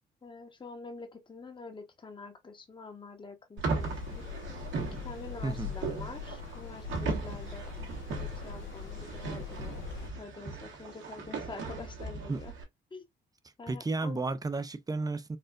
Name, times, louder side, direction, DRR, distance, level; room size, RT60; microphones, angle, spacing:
voice 1, 0.2-4.2 5.0-7.7 8.1-12.5 12.9-13.0 13.6-14.3, left 4 dB, 25° left, 1.0 m, -46 dB
sound 1, 3.6-12.6, right 4 dB, 75° right, 1.6 m, -38 dB
sound 2, 3.8-10.1, left 6 dB, 80° left, 1.1 m, -41 dB
voice 2, 5.4-5.7 12.3-12.4 13.7-15.4, right 3 dB, 20° right, 0.5 m, -32 dB
4.2 x 2.5 x 2.3 m
cardioid pair, 90°, 20 cm